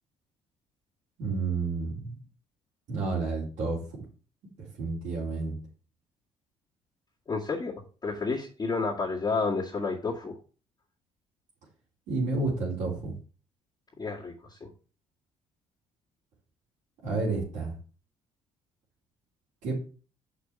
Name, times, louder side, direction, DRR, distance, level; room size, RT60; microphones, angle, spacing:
voice 1, 1.2-2.2 2.9-3.8 4.6-5.6 12.1-13.1 17.0-17.7 19.6-19.8, right 3 dB, 70° right, -6 dB, 3.6 m, -30 dB
voice 2, 7.3-7.7 8.0-10.3 14.0-14.7, left 4 dB, 30° left, -5 dB, 2.0 m, -30 dB
6.0 x 5.9 x 5.0 m, 0.38 s
hypercardioid pair, 60°, 14 cm